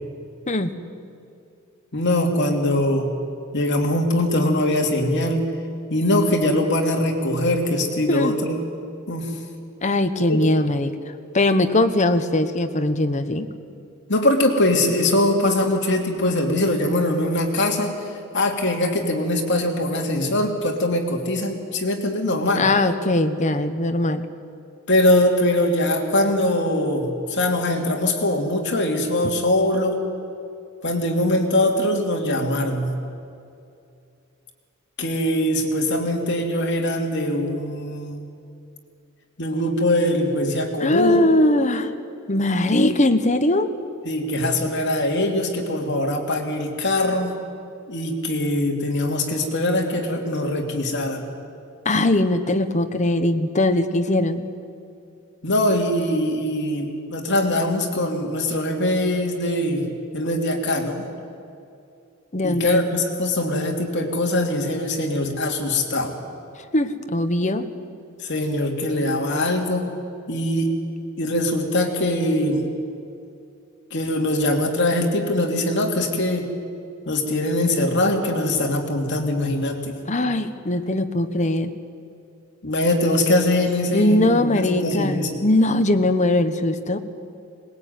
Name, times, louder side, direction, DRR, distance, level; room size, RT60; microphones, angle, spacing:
voice 1, 1.9-3.1 3.5-5.4 5.9-8.6 9.1-9.3 10.3-10.5 14.1-17.9 18.3-22.7 24.9-30.0 30.8-32.9 35.0-38.2 39.4-41.3 42.9-43.0 44.0-47.3 47.9-51.3 55.4-59.9 60.1-61.0 62.4-66.1 68.2-69.9 70.3-70.7 71.2-72.6 73.9-76.5 77.1-80.0 82.6-85.4, left 1 dB, 60° left, 2 dB, 2.9 m, -22 dB
voice 2, 9.8-10.9 11.3-13.5 22.5-24.3 40.8-41.9 42.3-43.7 51.8-54.5 62.3-62.8 66.7-67.7 80.1-81.7 83.9-87.0, left 1 dB, 35° left, 9 dB, 1.2 m, -20 dB
21.5 x 20.0 x 9.4 m, 2.5 s
head